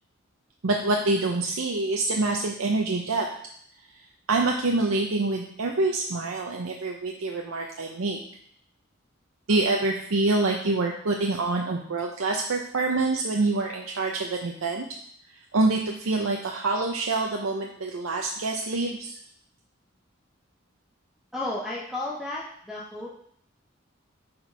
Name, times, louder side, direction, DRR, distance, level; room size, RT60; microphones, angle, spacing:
voice 1, 0.6-3.3 4.3-8.2 9.5-14.9 15.5-19.1, right 2 dB, 90° right, 1 dB, 0.7 m, -26 dB
voice 2, 21.3-23.1, left 2 dB, 5° right, -4 dB, 0.7 m, -33 dB
6.4 x 4.4 x 4.5 m, 0.66 s
head